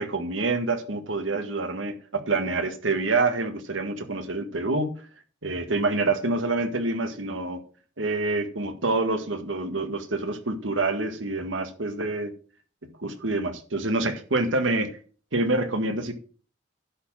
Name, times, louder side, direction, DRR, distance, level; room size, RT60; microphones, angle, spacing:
voice 1, 0.0-4.9 5.4-7.6 8.0-12.3 13.0-14.9 15.3-16.1, right 2 dB, 90° right, 7 dB, 1.7 m, -27 dB
11.0 x 4.4 x 7.3 m, 0.40 s
head